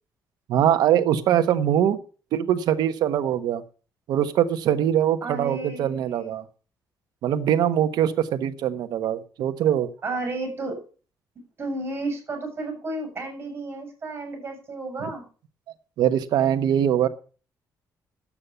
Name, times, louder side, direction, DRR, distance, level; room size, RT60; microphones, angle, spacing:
voice 1, 0.5-2.0 2.3-3.6 4.1-6.4 7.2-9.9 16.0-17.1, right 10 dB, 85° right, 10 dB, 1.2 m, -22 dB
voice 2, 5.2-6.4 10.0-10.8 11.6-15.2, right 2 dB, 35° right, 4 dB, 6.9 m, -32 dB
11.5 x 8.7 x 6.8 m, 0.38 s
cardioid pair, 135°, 7 cm